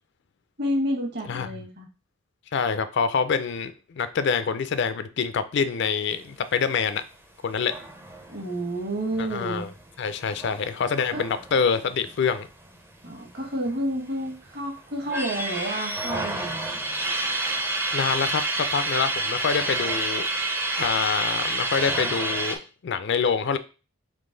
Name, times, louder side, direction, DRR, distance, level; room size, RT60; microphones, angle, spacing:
voice 1, 0.6-1.9 8.3-9.7 11.1-11.2 13.0-16.7, right 1 dB, 50° right, 1.2 m, -30 dB
voice 2, 2.5-7.0 7.4-7.7 9.2-9.7 10.0-12.5 17.9-20.3 20.8-22.6 22.8-23.6, left 6 dB, 55° left, 0.4 m, -26 dB
sound 1, 7.6-12.7 13.0-13.1 13.4-14.3 14.8-22.6, right 2 dB, 10° right, 0.4 m, -29 dB
3.8 x 3.0 x 3.8 m
head